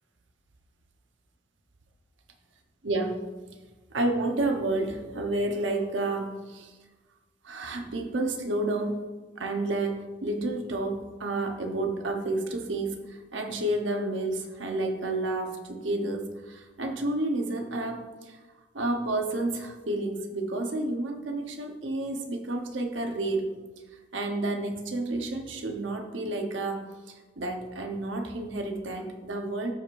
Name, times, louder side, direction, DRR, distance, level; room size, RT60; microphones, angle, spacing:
voice 1, 2.8-3.3 3.9-6.7 7.4-9.0 9.4-18.4 18.7-23.5 24.1-29.7, right 2 dB, 90° right, 3 dB, 1.0 m, -30 dB
14.0 x 4.7 x 2.6 m, 1.2 s
head